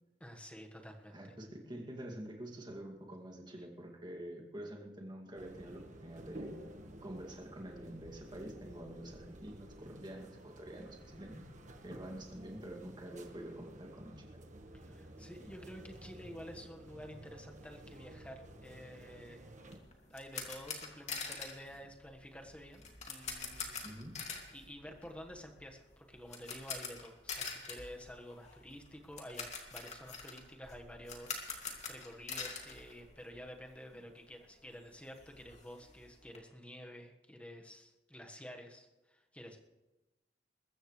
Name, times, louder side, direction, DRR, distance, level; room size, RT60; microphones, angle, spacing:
voice 1, 0.2-1.3 14.7-19.5 20.1-23.8 24.5-39.6, equal, 5° left, 2 dB, 1.5 m, -50 dB
voice 2, 1.1-6.5 7.0-11.5 11.8-14.2 23.8-24.1, right 1 dB, 25° right, 1 dB, 2.4 m, -47 dB
sound 1, 5.4-19.8, right 1 dB, 45° right, 1.5 m, -52 dB
sound 2, 19.7-33.7 33.9-34.1 34.5-34.6 34.8-36.4, left 5 dB, 40° left, 2.5 m, -45 dB
22.0 x 14.5 x 3.3 m, 1.1 s
head